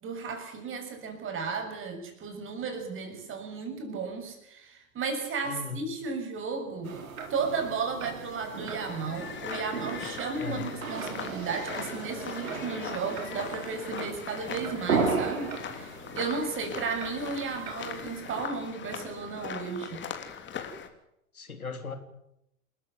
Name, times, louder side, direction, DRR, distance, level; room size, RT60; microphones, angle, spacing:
voice 1, 0.0-7.0 7.3-20.1, right 5 dB, 30° right, 6 dB, 6.5 m, -34 dB
voice 2, 5.4-5.8 10.4-10.7 21.3-22.0, left 5 dB, 80° left, 7 dB, 3.3 m, -37 dB
sound 1, 6.8-18.4, right 5 dB, 70° right, 4.0 m, -36 dB
sound 2, 8.2-20.9, left 8 dB, 25° left, 3.2 m, -41 dB
28.0 x 14.5 x 8.1 m, 0.81 s
figure-of-eight pair, 90°, 42 cm